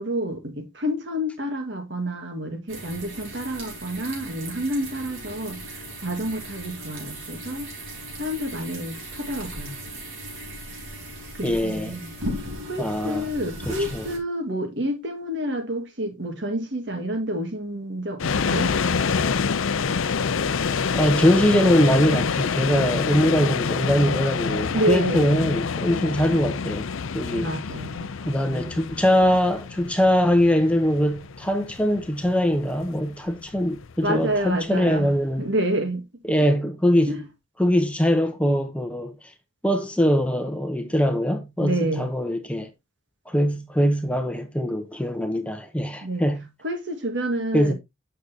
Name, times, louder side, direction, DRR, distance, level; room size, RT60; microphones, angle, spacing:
voice 1, 0.0-5.6 6.0-7.7 8.2-9.8 11.4-12.1 12.6-18.7 24.7-25.4 27.2-28.1 28.5-28.7 34.0-35.1 35.4-36.0 37.1-37.3 41.6-42.1 46.0-46.3 46.6-47.7, right 1 dB, 60° right, 1.8 m, -28 dB
sound 1, 2.7-14.2, right 1 dB, 80° right, 4.0 m, -37 dB
voice 2, 11.4-12.0 12.8-13.2 13.7-14.0 20.9-26.9 27.1-27.5 28.3-35.5 36.3-37.2 37.6-39.1 39.6-42.7 43.3-46.5 47.5-47.7, equal, 5° left, 0.8 m, -22 dB
sound 2, 18.2-35.2, left 5 dB, 75° left, 0.5 m, -27 dB
8.7 x 6.6 x 2.8 m
head